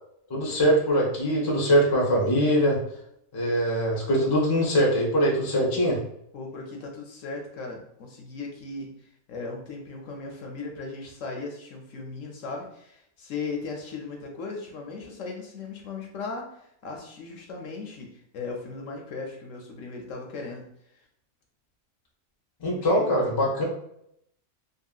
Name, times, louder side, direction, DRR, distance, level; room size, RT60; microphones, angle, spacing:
voice 1, 0.3-2.8 3.3-6.0 22.6-23.6, equal, 25° left, -2 dB, 0.5 m, -22 dB
voice 2, 6.3-18.1 18.3-20.6 22.6-23.5, left 4 dB, 70° left, 1 dB, 0.9 m, -37 dB
2.8 x 2.7 x 2.3 m, 0.75 s
omnidirectional pair, 1.5 m